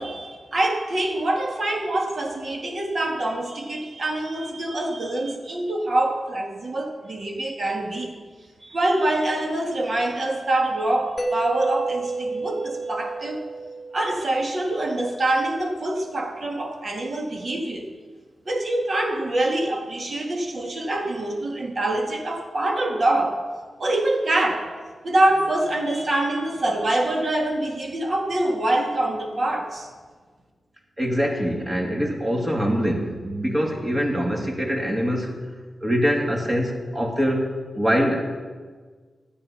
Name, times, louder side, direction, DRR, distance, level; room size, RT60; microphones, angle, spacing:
voice 1, 0.0-8.1 8.6-13.4 13.9-17.9 18.5-23.4 23.8-24.7 25.0-29.9, right 1 dB, 50° right, 2 dB, 2.0 m, -25 dB
Mallet percussion, 11.2-14.9, right 3 dB, 25° left, 0.9 m, -31 dB
voice 2, 31.0-35.4 35.8-38.2, equal, 25° right, 1 dB, 2.2 m, -24 dB
12.5 x 9.0 x 5.7 m, 1.5 s
cardioid pair, 80°, 0 cm